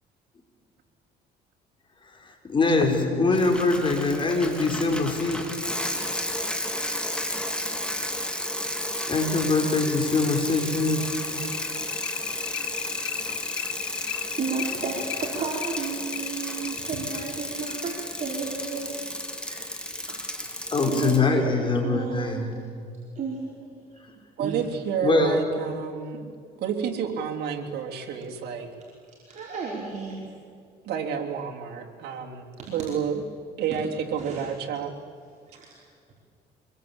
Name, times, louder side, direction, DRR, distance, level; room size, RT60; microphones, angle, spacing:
voice 1, 2.5-5.4 9.1-11.1 20.7-22.5 25.0-25.4, left 3 dB, 30° left, 3 dB, 5.1 m, -23 dB
sound 1, 2.8-6.0 7.4-7.5 7.9-8.0 8.4-8.5 9.0-19.0, left 12 dB, 85° left, 1.2 m, -37 dB
Bicycle, 3.3-21.2, left 1 dB, 5° left, 3.1 m, -33 dB
voice 2, 14.2-18.9 19.3-19.7 20.1-20.2 20.5-21.5 21.8-22.4 23.2-23.5 24.4-24.6 29.3-30.3 32.6-32.7 34.2-34.4 35.5-35.8 36.1-36.2, right 5 dB, 45° right, -4 dB, 5.2 m, -33 dB
voice 3, 24.4-26.3 26.6-28.7 30.9-33.2 33.6-34.9, right 7 dB, 75° right, 1 dB, 3.4 m, -30 dB
25.5 x 22.0 x 9.0 m, 2.2 s
cardioid pair, 110°, 17 cm